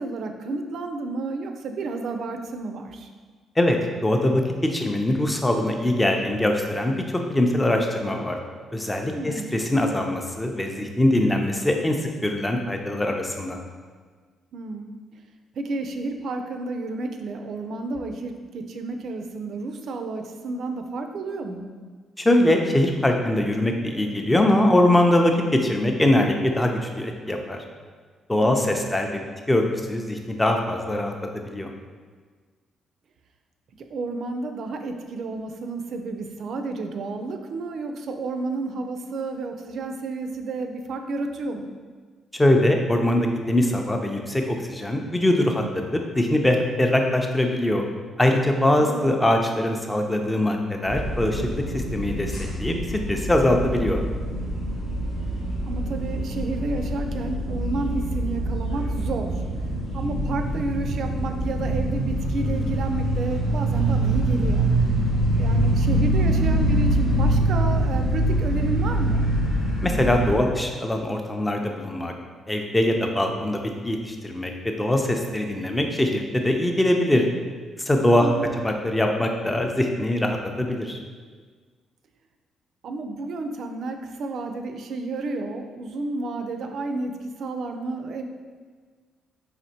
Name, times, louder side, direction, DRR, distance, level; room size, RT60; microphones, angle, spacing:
voice 1, 0.0-3.1 9.1-9.6 14.5-15.0 15.6-21.7 28.4-28.9 33.9-41.8 48.8-49.1 55.7-59.4 59.9-64.7 65.4-69.3 78.2-78.6 82.8-88.2, right 3 dB, 65° right, 6 dB, 0.3 m, -31 dB
voice 2, 3.6-6.9 7.3-8.4 8.7-12.0 12.2-13.6 22.2-27.6 28.3-29.1 29.5-31.1 31.5-31.7 42.3-47.9 48.2-51.5 51.7-52.3 52.6-54.0 69.8-72.1 72.5-77.2 77.8-78.3 78.6-81.0, left 1 dB, 15° left, 3 dB, 0.4 m, -22 dB
sound 1, 50.8-70.4, right 1 dB, 85° left, 1.2 m, -24 dB
4.2 x 2.9 x 2.8 m, 1.5 s
cardioid pair, 90°, 0 cm